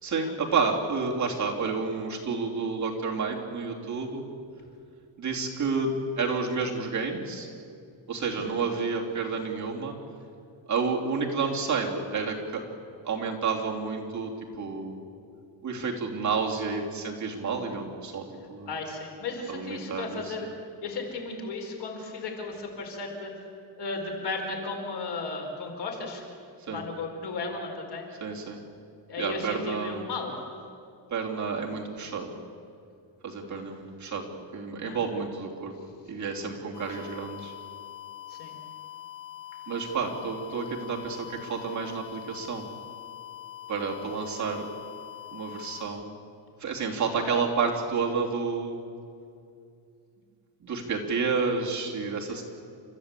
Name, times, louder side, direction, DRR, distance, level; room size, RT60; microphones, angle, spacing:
voice 1, 0.0-4.2 5.2-5.9 6.2-7.5 8.1-9.9 10.7-12.6 13.0-14.3 14.6-15.0 15.6-18.7 19.5-20.5 26.6-26.8 28.2-28.6 29.2-30.0 31.1-32.3 33.2-34.2 34.5-35.7 36.1-37.5 39.7-42.7 43.7-44.7 45.3-46.2 46.6-48.8 50.6-52.4, right 5 dB, 40° right, -1 dB, 3.0 m, -30 dB
voice 2, 18.7-20.5 20.8-23.3 23.8-26.2 26.7-28.0 29.1-30.4 34.8-35.0 36.8-36.9 38.3-38.5 47.2-47.4, left 3 dB, 60° left, 2 dB, 4.7 m, -35 dB
sound 1, 36.7-45.8, left 12 dB, 75° left, 7.2 m, -43 dB
30.0 x 14.0 x 8.3 m, 2.4 s
cardioid pair, 155°, 45 cm